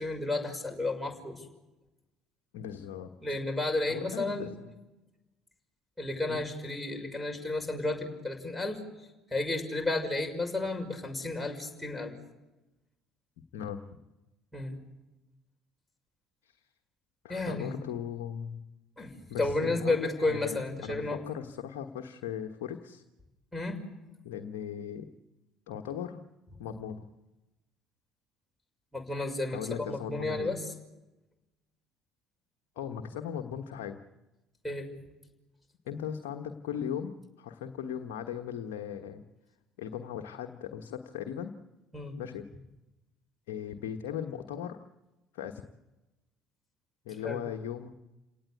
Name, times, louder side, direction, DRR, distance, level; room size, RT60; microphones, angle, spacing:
voice 1, 0.0-1.4 3.2-4.5 6.0-12.2 14.5-14.8 17.3-17.7 19.0-21.2 23.5-23.8 28.9-30.6 34.6-35.0 41.9-42.1 47.2-47.4, left 2 dB, 5° left, 0 dB, 6.1 m, -32 dB
voice 2, 2.5-3.4 3.9-4.7 6.3-6.4 13.5-13.8 17.2-18.6 19.3-23.0 24.2-25.1 25.7-26.2 26.6-27.0 29.5-30.5 32.8-34.0 35.9-39.2 39.8-41.6 42.2-42.5 43.5-44.8 45.3-45.6 47.0-47.9, left 8 dB, 65° left, 4 dB, 1.3 m, -38 dB
29.0 x 18.5 x 8.4 m, 1.0 s
figure-of-eight pair, 55°, 0 cm